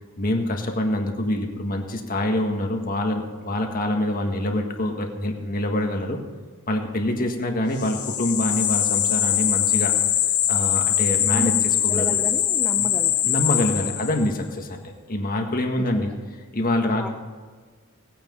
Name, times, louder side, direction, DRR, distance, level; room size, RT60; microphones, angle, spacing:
voice 1, 0.2-6.2 6.7-9.9 10.5-12.1 12.8-12.9 13.2-14.8 15.1-16.1 16.5-17.1, left 1 dB, 40° left, 3 dB, 1.7 m, -25 dB
sound 1, 7.8-14.3, left 11 dB, 80° left, 1.1 m, -22 dB
voice 2, 11.9-13.3 15.8-16.1 16.9-17.1, equal, 5° left, 3 dB, 0.5 m, -32 dB
18.5 x 9.1 x 5.5 m, 1.5 s
head